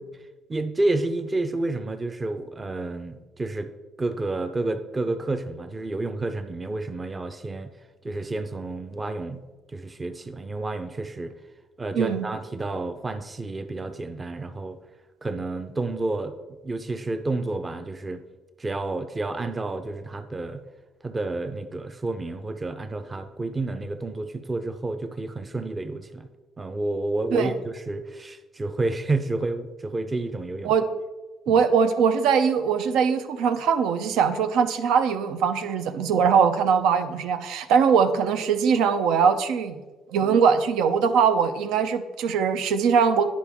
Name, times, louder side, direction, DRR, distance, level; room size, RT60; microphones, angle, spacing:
voice 1, 0.5-3.7 4.0-7.7 8.0-9.4 9.7-11.3 11.8-14.8 15.2-16.4 16.6-18.2 18.6-20.6 21.0-26.3 26.6-30.7 31.5-31.6, right 2 dB, 20° right, 8 dB, 0.5 m, -30 dB
voice 2, 11.9-12.3 27.3-27.5 30.6-30.8 31.5-39.8 40.1-43.3, right 6 dB, 85° right, 8 dB, 0.6 m, -21 dB
9.9 x 5.1 x 3.5 m, 1.2 s
cardioid pair, 125°, 0 cm